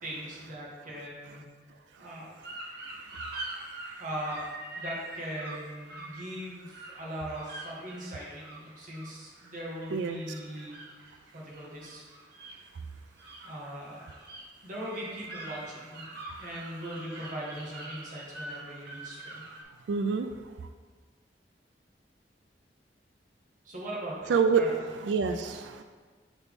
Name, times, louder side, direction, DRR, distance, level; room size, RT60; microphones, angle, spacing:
voice 1, 0.0-2.3 4.0-4.5 4.8-10.9 11.3-12.0 13.4-14.1 14.6-16.1 16.4-19.4 23.6-24.9 25.2-25.4, equal, 45° right, -5 dB, 1.5 m, -40 dB
sound 1, 2.4-19.6, right 2 dB, 60° right, 1.1 m, -44 dB
voice 2, 19.9-20.3 24.3-24.6 25.0-25.8, right 6 dB, 80° right, 8 dB, 0.3 m, -26 dB
6.8 x 4.1 x 3.6 m, 1.4 s
head